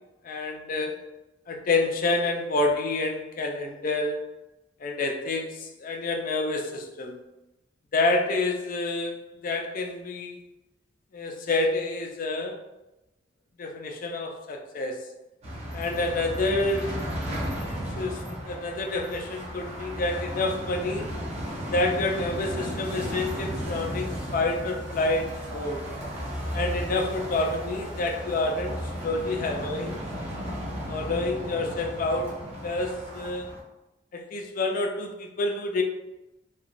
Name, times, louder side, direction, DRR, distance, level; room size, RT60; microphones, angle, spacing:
voice 1, 0.2-1.0 1.5-4.3 4.8-7.2 7.9-9.2 9.4-10.4 11.1-12.6 13.6-15.1 15.7-17.0 18.0-21.1 21.7-25.8 26.5-30.0 30.9-33.5 34.1-35.8, left 2 dB, 45° left, 2 dB, 0.4 m, -28 dB
sound 1, 15.4-33.6, equal, 35° right, 0.8 m, -34 dB
2.8 x 2.2 x 2.5 m, 0.97 s
head